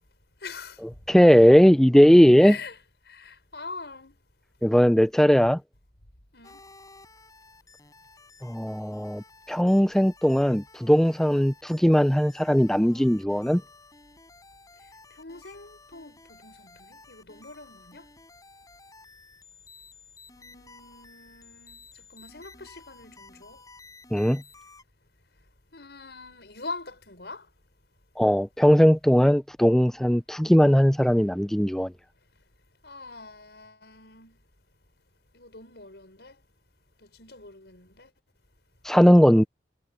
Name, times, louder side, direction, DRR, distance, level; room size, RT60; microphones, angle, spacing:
voice 1, 0.4-0.8 2.4-2.8 3.1-4.2 6.3-6.6 15.2-18.1 20.4-23.6 25.7-27.5 32.8-34.4 35.3-36.4 37.0-38.1, left 3 dB, 70° left, 5.3 m, -43 dB
voice 2, 1.1-2.6 4.6-5.6 8.4-13.6 24.1-24.4 28.2-31.9 38.8-39.4, equal, 5° left, 0.4 m, -19 dB
sound 1, 6.4-24.8, left 3 dB, 20° left, 7.6 m, -53 dB
head